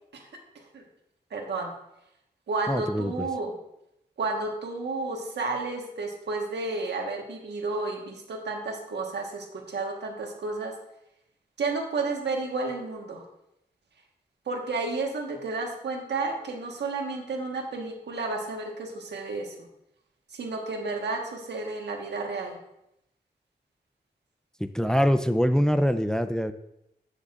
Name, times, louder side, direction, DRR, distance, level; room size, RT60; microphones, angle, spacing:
voice 1, 1.3-1.7 2.5-3.5 4.2-10.7 11.6-13.2 14.5-19.5 20.3-22.6, right 3 dB, 80° right, 2 dB, 1.5 m, -31 dB
voice 2, 2.7-3.3 24.7-26.5, equal, 5° left, 10 dB, 0.6 m, -24 dB
13.0 x 6.7 x 2.5 m, 0.82 s
cardioid pair, 40°, 18 cm